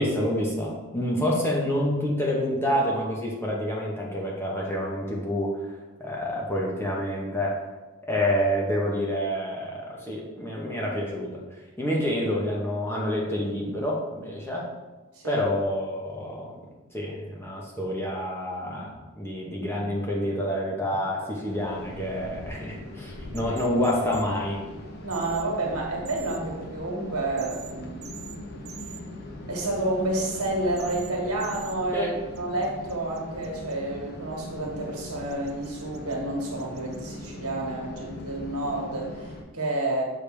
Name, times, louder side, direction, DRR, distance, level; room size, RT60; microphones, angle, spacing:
voice 1, 0.0-7.7 8.1-14.7 15.2-16.5 16.9-24.6 31.9-32.1, equal, 10° left, -3 dB, 1.0 m, -28 dB
sound 1, 18.4-23.6 23.8-25.4, right 1 dB, 25° left, 2.1 m, -49 dB
sound 2, 21.4-39.4, left 1 dB, 45° left, 0.8 m, -41 dB
sound 3, 23.4-24.2 25.1-25.4 26.1-26.4 27.4-27.7 28.0-28.4 28.7-29.0 30.2-30.5 30.8-31.1 31.4-31.8 32.4-33.7 35.3-36.1 36.6-37.3, right 9 dB, 45° right, 0.5 m, -44 dB
voice 2, 25.0-28.1 29.5-40.0, right 2 dB, 80° right, -1 dB, 1.7 m, -30 dB
6.9 x 5.0 x 3.4 m, 1.2 s
head